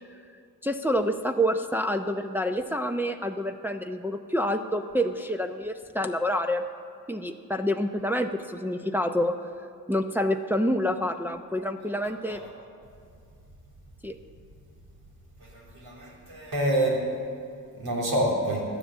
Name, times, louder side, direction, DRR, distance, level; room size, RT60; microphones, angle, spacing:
voice 1, 0.6-6.6 7.1-9.4 9.9-12.4 14.0-14.2, equal, 5° right, 4 dB, 0.7 m, -27 dB
voice 2, 15.5-17.0 17.8-18.6, right 1 dB, 85° right, -3 dB, 3.4 m, -27 dB
12.5 x 9.9 x 7.4 m, 2.3 s
cardioid pair, 60°, 36 cm